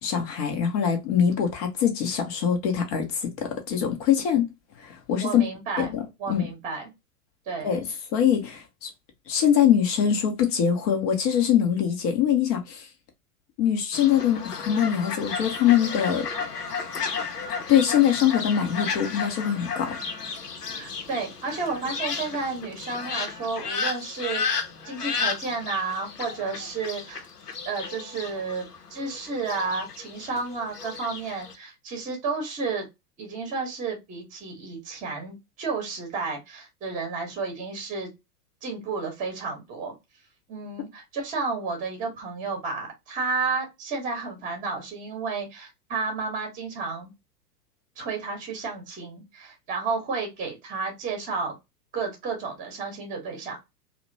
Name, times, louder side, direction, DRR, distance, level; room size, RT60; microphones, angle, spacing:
voice 1, 0.0-4.5 4.8-5.4 5.8-6.5 7.6-7.8 8.1-8.9 9.3-12.9 13.6-16.3 17.7-20.0, left 9 dB, 25° left, 0.6 m, -23 dB
voice 2, 5.1-5.9 6.2-6.9 7.5-7.7 20.8-27.2 27.6-32.9 33.2-38.1 38.6-39.9 40.5-47.1 48.0-51.5 51.9-53.6, right 4 dB, 15° right, 0.9 m, -32 dB
Fowl, 13.9-31.6, left 5 dB, 80° left, 0.6 m, -33 dB
2.8 x 2.0 x 2.5 m
figure-of-eight pair, 100°, 46 cm